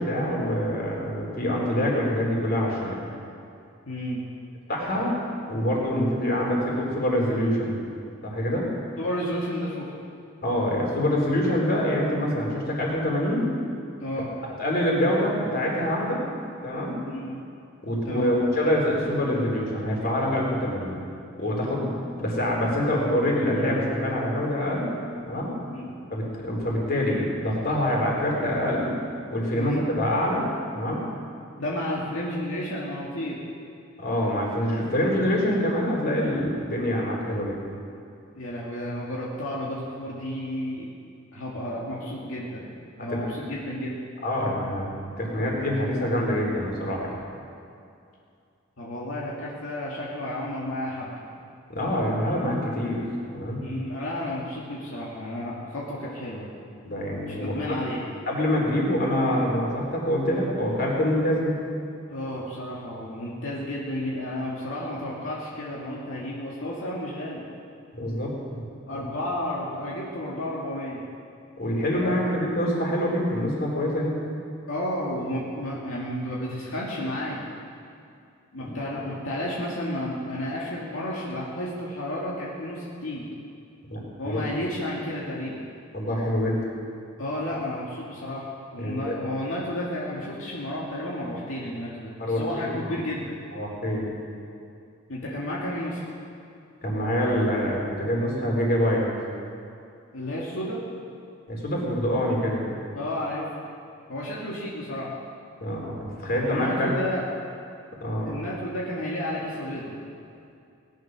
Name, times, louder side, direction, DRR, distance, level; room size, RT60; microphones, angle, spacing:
voice 1, 0.0-3.0 4.7-5.1 5.5-7.8 8.2-8.7 10.4-13.4 14.6-16.2 16.6-17.0 17.8-21.0 21.4-21.9 22.2-24.9 25.2-25.5 26.1-29.0 29.3-30.4 30.7-31.0 34.0-37.6 43.1-43.3 44.2-44.9 45.2-47.2 51.7-53.0 53.3-53.6 56.8-57.5 58.3-61.6 67.9-68.6 68.9-69.0 71.6-74.2 83.9-84.4 85.9-86.6 88.8-89.2 92.2-92.8 93.5-94.0 96.8-99.0 101.5-102.6 105.6-106.9 108.0-108.4, equal, 50° left, -2 dB, 3.7 m, -25 dB
voice 2, 3.9-4.3 9.0-9.9 14.0-14.3 17.0-17.4 18.1-18.3 25.7-25.9 29.6-29.9 31.6-33.4 38.4-40.9 41.3-42.7 43.0-44.0 48.8-51.1 53.6-56.5 57.3-58.0 62.1-67.4 68.9-71.0 72.0-72.3 74.7-77.5 78.5-83.3 84.2-85.6 87.2-93.3 95.1-96.0 100.1-100.8 102.9-103.5 104.1-105.1 106.4-107.3 108.2-109.9, left 1 dB, 85° left, -5 dB, 2.2 m, -32 dB
19.0 x 10.5 x 6.2 m, 2.5 s
head